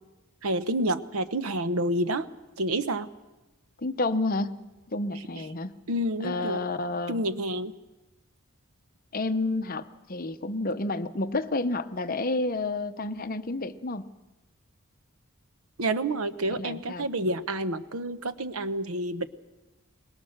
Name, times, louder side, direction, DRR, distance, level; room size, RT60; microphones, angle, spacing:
voice 1, 0.4-2.3 2.6-3.1 5.9-6.6 7.1-7.7 15.8-19.3, right 1 dB, 80° right, 12 dB, 0.9 m, -29 dB
voice 2, 3.8-4.6 4.9-5.8 6.2-7.2 9.1-14.1 16.6-17.1, left 2 dB, 40° left, 10 dB, 0.8 m, -30 dB
22.5 x 20.5 x 6.5 m, 1.1 s
head